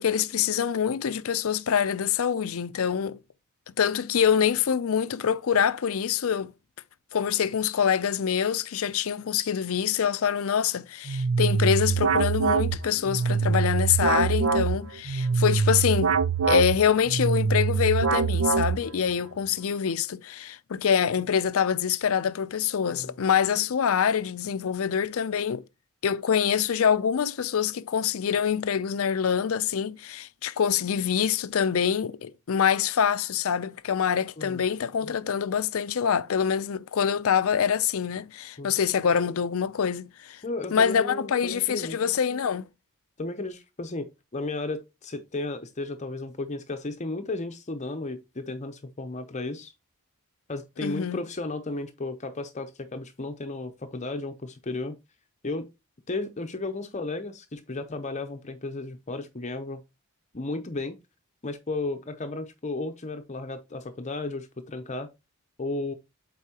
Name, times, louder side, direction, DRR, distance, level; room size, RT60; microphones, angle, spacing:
voice 1, 0.0-3.2 3.8-6.5 7.1-16.2 16.4-25.6 26.0-40.4 40.7-42.7 50.8-51.2, left 7 dB, 70° left, 0.5 m, -25 dB
sound 1, 11.1-19.1, right 5 dB, 70° right, 0.6 m, -24 dB
voice 2, 40.4-42.0 43.2-49.7 50.5-55.0 55.4-55.7 56.1-59.8 60.3-61.0 61.4-65.1 65.6-65.9, left 2 dB, 30° left, 0.7 m, -34 dB
8.1 x 4.2 x 2.9 m
head